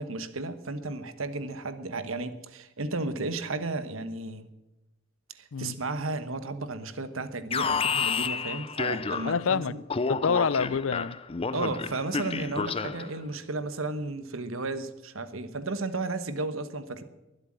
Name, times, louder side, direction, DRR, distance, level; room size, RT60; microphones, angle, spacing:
voice 1, 0.0-4.5 5.3-9.8 11.5-17.0, right 2 dB, 85° right, 1.3 m, -33 dB
Alarm, 7.5-9.5 9.9-13.2, left 5 dB, 30° left, 0.5 m, -30 dB
voice 2, 9.2-11.2, left 6 dB, 75° left, 0.5 m, -27 dB
22.5 x 8.1 x 7.6 m
head